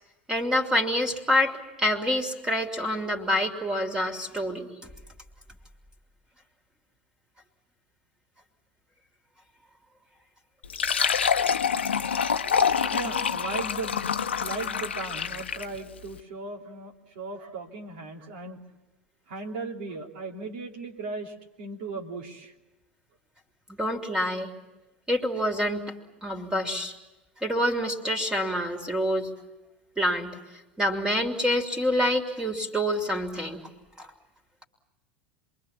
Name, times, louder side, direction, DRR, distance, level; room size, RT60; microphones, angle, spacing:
voice 1, 0.3-4.9 23.8-24.5 25.1-25.8 26.2-26.9 27.4-29.3 30.0-30.3 30.8-33.6 34.0-34.1, equal, 10° right, 3 dB, 3.2 m, -27 dB
Fill (with liquid), 10.6-15.8, left 7 dB, 75° left, 0.9 m, -26 dB
voice 2, 12.3-14.0 14.4-18.6 19.3-22.5, right 3 dB, 60° right, 0 dB, 3.1 m, -37 dB
27.0 x 22.5 x 7.4 m, 1.1 s
figure-of-eight pair, 80°, 6 cm